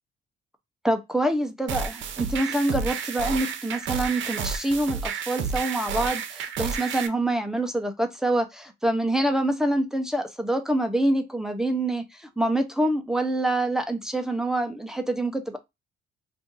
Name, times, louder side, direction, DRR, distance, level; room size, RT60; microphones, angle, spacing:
voice 1, 0.8-15.6, right 1 dB, ahead, 0.6 m, -26 dB
sound 1, 1.7-7.1, right 6 dB, 70° right, 0.6 m, -31 dB
2.6 x 2.5 x 3.8 m
cardioid pair, 90°, 20 cm